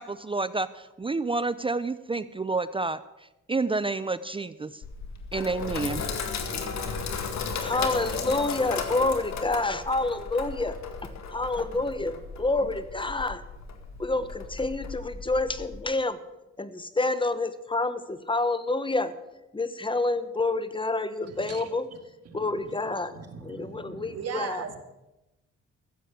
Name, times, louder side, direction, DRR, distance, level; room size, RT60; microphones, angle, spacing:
voice 1, 0.0-3.0 3.5-4.8 5.3-6.1, right 3 dB, 20° right, 15 dB, 0.5 m, -29 dB
Sink (filling or washing), 4.8-15.8, left 5 dB, 65° left, 2.1 m, -35 dB
voice 2, 7.6-10.8 11.0-13.4 14.0-16.2 16.6-19.1 19.5-21.8 22.3-23.1 23.4-24.6, left 2 dB, 15° left, 13 dB, 1.1 m, -28 dB
voice 3, 21.2-22.0 22.2-24.8, right 6 dB, 55° right, 6 dB, 2.1 m, -40 dB
15.0 x 7.7 x 8.2 m, 0.97 s
cardioid pair, 90°, 30 cm